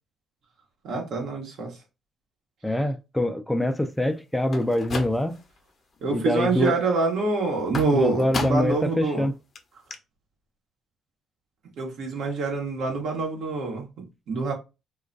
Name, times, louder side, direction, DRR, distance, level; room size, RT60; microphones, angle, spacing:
voice 1, 0.8-1.8 6.0-9.3 11.8-14.5, right 3 dB, 70° right, 1.0 m, -26 dB
voice 2, 2.6-5.4 6.1-6.7 7.9-9.3, left 1 dB, 10° left, 0.3 m, -24 dB
sound 1, 4.4-5.6 6.0-6.5 7.7-8.9 9.2-9.3 9.6-9.7 9.9-10.0, left 4 dB, 45° left, 0.6 m, -35 dB
2.3 x 2.2 x 2.5 m
supercardioid pair, 60°, 0 cm